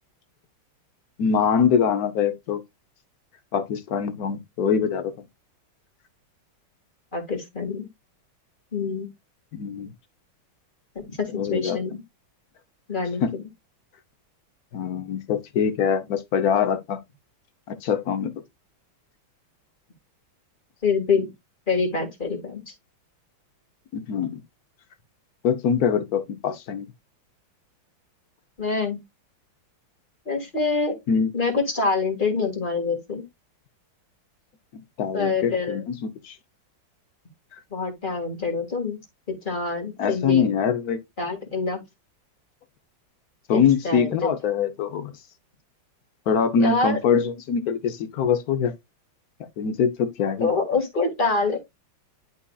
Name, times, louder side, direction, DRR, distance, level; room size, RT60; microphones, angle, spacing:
voice 1, 1.2-2.6 3.5-5.1 9.5-9.9 11.3-11.8 13.2-13.3 14.7-17.0 17.7-18.3 23.9-24.4 25.4-26.9 31.1-31.3 35.0-36.4 40.0-41.0 43.5-45.1 46.3-48.7 49.6-50.5, left 7 dB, 60° left, 1.1 m, -23 dB
voice 2, 7.1-7.9 8.7-9.1 11.1-12.0 12.9-13.4 20.8-21.3 21.7-22.6 28.6-29.0 30.3-31.0 31.3-33.2 35.1-35.8 37.7-39.0 39.4-40.6 41.2-41.8 43.5-44.3 46.6-47.0 50.4-51.6, left 4 dB, 25° left, 1.9 m, -25 dB
11.0 x 4.1 x 2.3 m
omnidirectional pair, 2.2 m